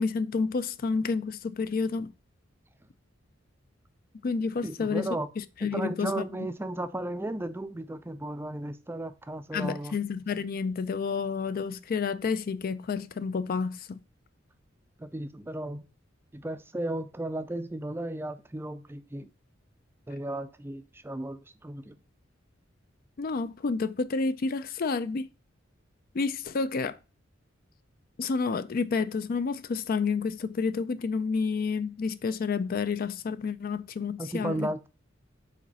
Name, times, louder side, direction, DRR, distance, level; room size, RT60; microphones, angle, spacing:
voice 1, 0.0-2.1 4.2-5.1 5.6-6.2 9.5-14.0 23.2-25.3 26.1-27.0 28.2-34.7, left 4 dB, 50° left, 0.4 m, -29 dB
voice 2, 4.6-5.3 5.7-10.0 15.0-15.9 16.3-19.3 20.1-22.0 34.2-34.9, right 1 dB, 10° right, 0.4 m, -35 dB
5.0 x 4.1 x 5.4 m
head